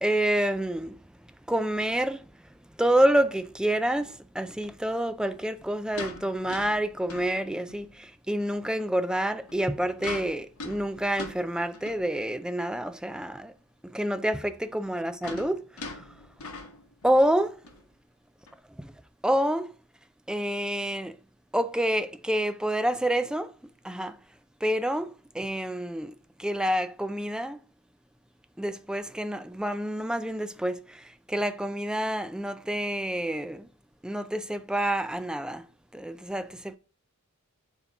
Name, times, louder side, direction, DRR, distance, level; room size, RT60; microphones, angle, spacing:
voice 1, 0.0-1.0 1.5-2.2 2.8-13.5 13.9-15.6 17.0-17.6 18.8-18.9 19.2-19.7 20.3-21.1 21.5-23.5 23.8-24.2 24.6-26.1 26.4-27.6 28.6-31.0 31.3-33.7 34.0-35.6 35.9-36.8, right 1 dB, 5° right, 0.3 m, -28 dB
sound 1, 3.3-3.5 5.3-8.0 8.4-8.5 9.4-12.2 12.8-12.9 13.1-13.2 14.5-17.3 17.6-17.8 18.5-18.6, left 2 dB, 70° left, 1.1 m, -42 dB
6.8 x 2.9 x 5.2 m
head